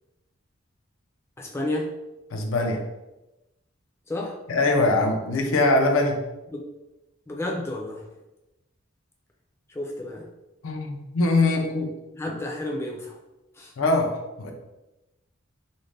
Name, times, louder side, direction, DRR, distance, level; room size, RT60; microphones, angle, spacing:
voice 1, 1.4-1.9 4.1-4.4 6.5-6.6 7.3-8.0 9.7-10.3 12.1-13.2 13.6-13.7, left 1 dB, 15° left, -2 dB, 0.4 m, -31 dB
voice 2, 2.3-2.8 4.5-6.2 10.6-11.9 13.8-14.5, left 2 dB, 80° left, 3 dB, 0.5 m, -22 dB
2.5 x 2.1 x 3.2 m, 1.0 s
head